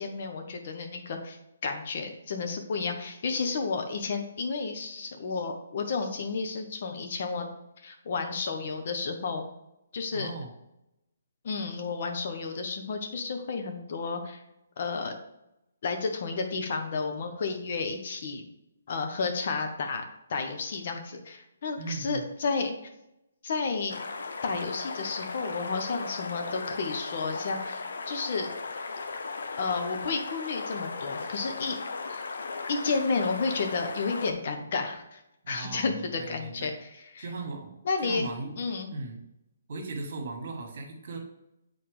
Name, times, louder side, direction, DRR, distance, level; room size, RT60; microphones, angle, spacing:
voice 1, 0.0-1.4 1.6-7.5 7.8-9.4 9.9-10.3 11.4-14.4 14.8-15.1 15.8-18.4 18.9-20.0 20.3-22.7 23.4-24.0 24.4-28.5 29.6-31.8 32.1-32.2 32.7-35.2 35.5-37.2 37.8-38.3 38.6-38.9, left 4 dB, 50° left, 5 dB, 1.0 m, -31 dB
voice 2, 10.1-10.5 21.8-22.3 35.4-36.7 37.2-39.2 39.7-41.2, right 3 dB, 55° right, 2 dB, 1.8 m, -38 dB
sound 1, 23.9-34.3, left 4 dB, 70° left, 0.7 m, -37 dB
7.7 x 4.2 x 3.5 m, 0.87 s
hypercardioid pair, 145°, 0 cm